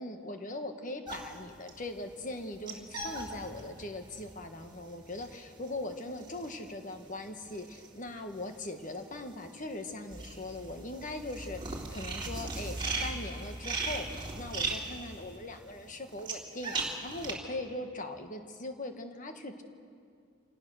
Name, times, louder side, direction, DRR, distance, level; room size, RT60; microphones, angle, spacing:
voice 1, 0.0-16.7 17.0-19.6, left 2 dB, 40° left, 6 dB, 1.4 m, -40 dB
sound 1, 1.0-8.6 8.8-17.3, right 3 dB, 25° right, 2.5 m, -39 dB
26.5 x 18.0 x 6.3 m, 2.4 s
head